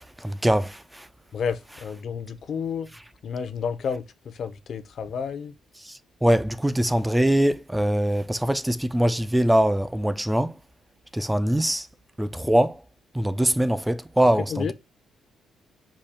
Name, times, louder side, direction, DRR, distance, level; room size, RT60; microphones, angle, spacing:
voice 1, 0.2-1.1 5.8-10.6 11.1-11.9 12.2-12.8 13.1-14.7, right 1 dB, 5° right, 0.4 m, -23 dB
voice 2, 1.3-2.9 3.2-5.5 14.5-14.7, left 6 dB, 60° left, 0.7 m, -31 dB
4.9 x 2.3 x 4.2 m
cardioid pair, 90°, 0 cm